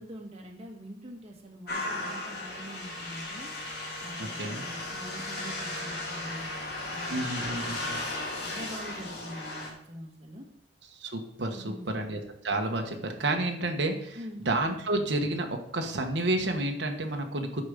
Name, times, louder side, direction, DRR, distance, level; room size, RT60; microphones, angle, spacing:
voice 1, 0.0-3.5 4.0-6.5 6.9-7.8 8.4-10.4 11.5-12.0 14.1-14.5, equal, 35° right, 0 dB, 1.7 m, -44 dB
sound 1, 1.7-9.7, left 2 dB, 60° left, 3.0 m, -36 dB
voice 2, 4.2-4.6 7.1-7.8 10.9-14.2 14.4-15.5 15.7-17.6, right 2 dB, 80° right, 3 dB, 1.3 m, -30 dB
13.0 x 5.4 x 5.1 m, 0.73 s
head